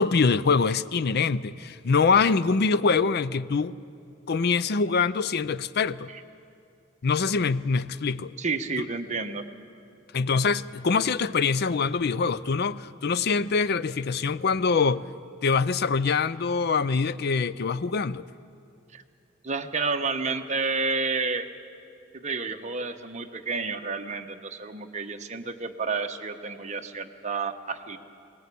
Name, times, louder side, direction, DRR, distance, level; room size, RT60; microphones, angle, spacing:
voice 1, 0.0-3.8 4.3-6.1 7.0-8.3 8.8-8.9 10.1-15.0 15.4-18.3, left 5 dB, 50° left, 0.5 m, -24 dB
voice 2, 8.4-9.4 18.9-19.0 19.4-21.5 22.1-28.0, right 4 dB, 35° right, 1.1 m, -30 dB
22.0 x 19.0 x 8.4 m
head